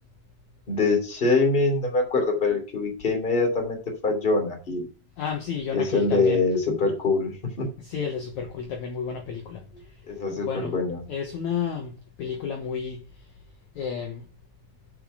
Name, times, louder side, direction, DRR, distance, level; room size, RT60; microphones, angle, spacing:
voice 1, 0.7-3.8 4.0-4.9 5.7-7.7 10.1-11.1, left 3 dB, 15° left, 2.1 m, -24 dB
voice 2, 5.2-6.4 7.8-9.6 10.2-10.8 11.1-13.0 13.7-14.2, left 6 dB, 70° left, 1.8 m, -31 dB
8.7 x 5.8 x 4.9 m
omnidirectional pair, 4.8 m